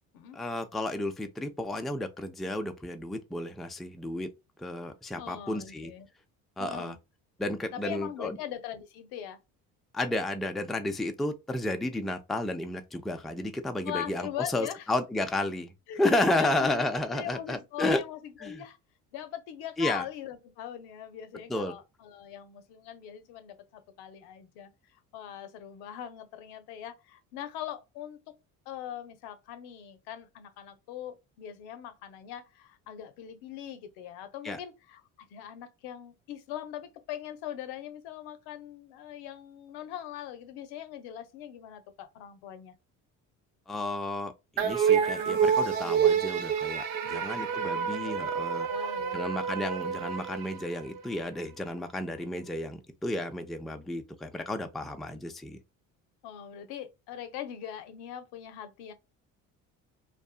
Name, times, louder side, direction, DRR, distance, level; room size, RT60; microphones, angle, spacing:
voice 1, 0.3-4.3 4.6-5.9 6.6-6.9 7.4-8.4 9.9-14.3 14.5-15.7 16.0-18.0 18.4-18.6 19.8-20.0 21.5-21.7 34.4-34.6 43.7-48.7 49.1-55.6, left 1 dB, ahead, 0.4 m, -32 dB
voice 2, 5.2-6.1 6.6-7.0 7.7-9.4 13.8-14.9 15.9-18.8 19.1-28.3 28.7-42.7 47.0-49.2 56.2-58.9, left 10 dB, 80° left, 0.7 m, -41 dB
sound 1, 44.6-51.1, right 7 dB, 60° right, 0.6 m, -28 dB
2.6 x 2.3 x 2.3 m
supercardioid pair, 75°, 38 cm